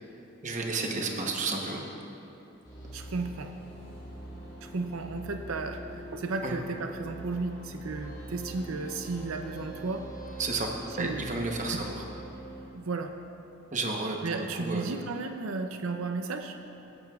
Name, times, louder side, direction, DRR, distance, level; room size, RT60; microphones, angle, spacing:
voice 1, 0.4-1.8 6.4-6.5 10.4-10.7 11.0-12.0 13.7-14.9, right 3 dB, 35° right, 1 dB, 0.9 m, -32 dB
sound 1, 2.6-12.7, equal, 20° left, 2.5 m, -43 dB
voice 2, 2.9-3.5 4.6-10.0 11.0-11.3 11.7-11.8 12.7-13.1 14.2-16.6, right 3 dB, 80° right, 6 dB, 0.5 m, -34 dB
16.0 x 10.5 x 2.4 m, 2.9 s
head